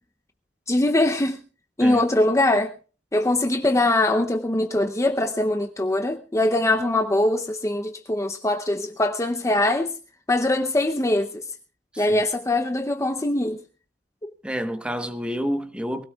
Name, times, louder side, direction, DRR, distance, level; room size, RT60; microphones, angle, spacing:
voice 1, 0.7-1.4 1.8-2.7 3.1-9.9 10.3-11.4 12.0-13.6 14.2-14.3, left 1 dB, 15° left, 0.7 m, -22 dB
voice 2, 11.9-12.2 14.4-16.0, equal, 5° right, 1.1 m, -29 dB
22.5 x 17.0 x 2.3 m
head